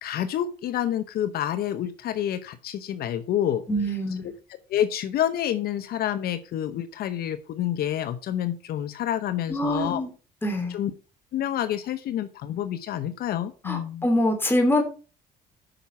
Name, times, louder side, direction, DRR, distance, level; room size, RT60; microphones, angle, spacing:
voice 1, 0.0-3.6 3.9-4.3 4.7-10.0 10.7-10.9 11.3-14.1, left 11 dB, 65° left, 10 dB, 0.9 m, -28 dB
voice 2, 3.7-4.3 9.5-10.1 10.4-10.7 13.7-14.8, left 1 dB, 10° left, 3 dB, 2.9 m, -24 dB
9.1 x 5.8 x 5.5 m, 0.34 s
cardioid pair, 110°, 17 cm